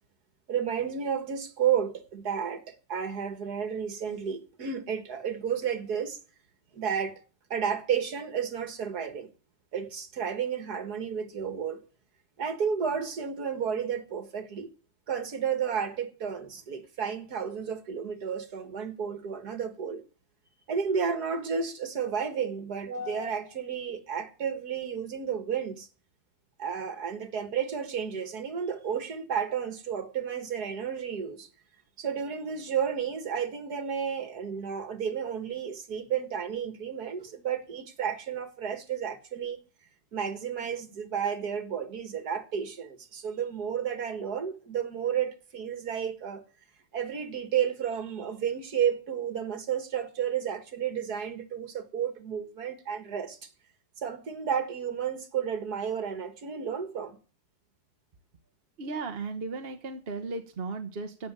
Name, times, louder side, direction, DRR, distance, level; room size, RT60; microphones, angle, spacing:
voice 1, 0.5-6.2 6.7-7.2 7.5-9.3 9.7-11.8 12.4-14.7 15.1-20.0 20.7-25.9 26.6-31.5 32.0-39.6 40.1-46.4 46.9-53.5 54.0-57.2, right 7 dB, 75° right, 2.3 m, -32 dB
voice 2, 58.8-61.3, right 3 dB, 40° right, 1.3 m, -36 dB
16.0 x 6.2 x 9.0 m
omnidirectional pair, 1.7 m